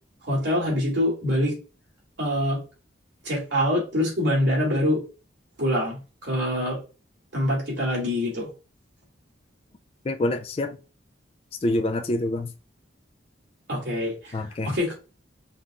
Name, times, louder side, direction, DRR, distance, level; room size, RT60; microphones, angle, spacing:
voice 1, 0.3-1.6 2.2-2.6 3.2-5.0 5.6-6.8 7.3-8.5 13.7-14.4 14.6-14.9, left 1 dB, 65° right, 2.4 m, -25 dB
voice 2, 10.0-10.8 11.6-12.5 14.3-14.7, left 1 dB, 30° left, 0.3 m, -26 dB
5.2 x 3.0 x 2.4 m
head